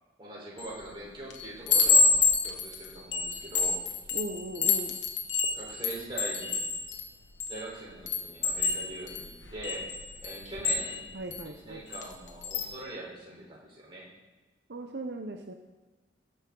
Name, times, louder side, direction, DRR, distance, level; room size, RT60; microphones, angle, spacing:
voice 1, 0.2-3.8 5.5-6.7 7.5-9.8 10.2-11.0 11.4-14.0, right 1 dB, 30° right, -5 dB, 4.1 m, -42 dB
Chime, 0.6-0.9 1.3-7.6 8.1-11.4 11.9-12.1 12.4-12.7, left 4 dB, 90° left, 1.2 m, -28 dB
voice 2, 4.1-5.0 11.1-11.8 14.7-15.5, right 2 dB, 70° right, 4 dB, 0.7 m, -38 dB
18.5 x 7.1 x 3.8 m, 1.2 s
head